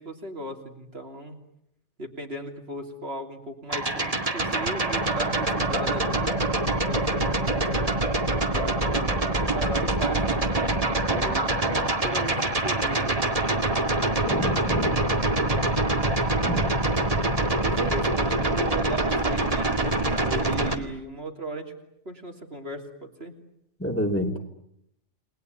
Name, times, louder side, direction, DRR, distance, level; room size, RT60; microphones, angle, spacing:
voice 1, 0.0-1.4 2.0-6.4 6.6-8.1 8.5-10.4 11.1-13.3 17.6-21.7 22.1-23.3, right 1 dB, 60° right, 2 dB, 3.4 m, -36 dB
sound 1, 3.7-20.8, right 2 dB, 30° right, 2.1 m, -25 dB
voice 2, 14.3-14.9 16.4-16.7 23.8-24.4, equal, 10° left, 2 dB, 3.0 m, -28 dB
30.0 x 20.5 x 9.5 m, 0.78 s
omnidirectional pair, 1.2 m